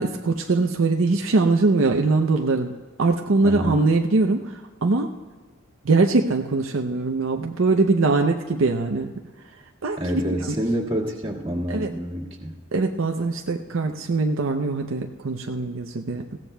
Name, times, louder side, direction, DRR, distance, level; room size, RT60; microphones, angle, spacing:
voice 1, 0.0-2.7 3.0-5.1 5.8-9.1 9.8-10.0 10.3-10.6 11.7-11.9 12.7-16.4, right 3 dB, 70° right, 3 dB, 0.6 m, -22 dB
voice 2, 3.4-3.8 10.0-12.5, equal, 25° right, -3 dB, 1.9 m, -27 dB
20.5 x 16.0 x 2.3 m, 1.4 s
head